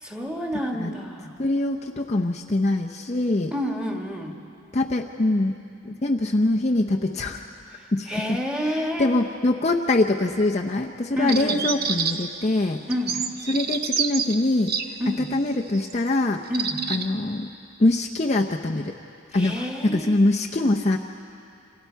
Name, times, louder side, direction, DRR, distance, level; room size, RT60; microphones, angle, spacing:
voice 1, 0.0-1.3 3.5-4.4 7.7-9.2 11.2-11.6 12.9-13.2 15.0-15.3 16.5-16.8 19.3-20.1, equal, 5° right, 0 dB, 1.7 m, -29 dB
voice 2, 1.4-3.5 4.7-5.5 5.8-7.4 7.9-8.4 9.0-12.8 13.5-14.7 15.3-16.4 16.9-17.5 17.8-18.9 19.3-21.0, left 2 dB, 30° left, 1 dB, 0.6 m, -23 dB
sound 1, 11.3-12.4 12.9-14.9 15.7-15.9 16.5-17.1, right 6 dB, 45° right, 0.9 m, -27 dB
28.0 x 26.5 x 4.6 m, 2.7 s
head